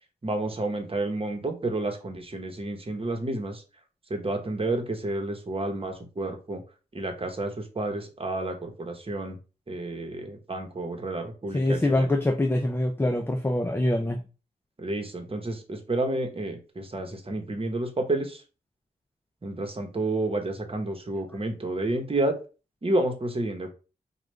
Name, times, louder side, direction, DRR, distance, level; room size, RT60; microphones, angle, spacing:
voice 1, 0.2-3.6 4.1-6.6 6.9-9.4 9.7-12.1 14.8-18.4 19.4-22.3 22.8-23.7, right 2 dB, 35° right, 4 dB, 1.1 m, -30 dB
voice 2, 11.5-14.2, left 1 dB, 15° left, 5 dB, 0.5 m, -24 dB
4.9 x 2.4 x 3.3 m, 0.33 s
cardioid pair, 65°, 17 cm